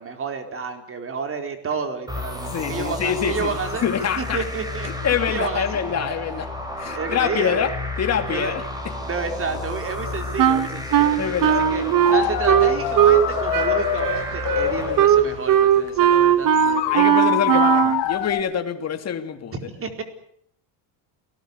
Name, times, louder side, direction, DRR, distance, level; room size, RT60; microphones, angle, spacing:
voice 1, 0.0-3.9 4.2-4.9 5.3-5.8 6.9-7.7 8.3-8.5 9.1-11.8 12.1-17.1 19.7-20.0, right 5 dB, 25° right, 4.5 m, -30 dB
sound 1, 2.1-15.6, left 1 dB, 10° right, 5.7 m, -32 dB
voice 2, 2.5-3.6 3.8-4.4 4.8-6.5 6.8-7.7 8.0-8.7 11.2-12.1 16.9-19.5, left 8 dB, 30° left, 2.7 m, -25 dB
Wind instrument woodwind instrument, 10.4-13.3 13.5-18.0, right 10 dB, 45° right, 2.2 m, -18 dB
sound 2, 12.0-16.3 16.5-18.4, left 13 dB, 55° left, 3.3 m, -25 dB
29.0 x 19.5 x 8.2 m
cardioid pair, 140°, 48 cm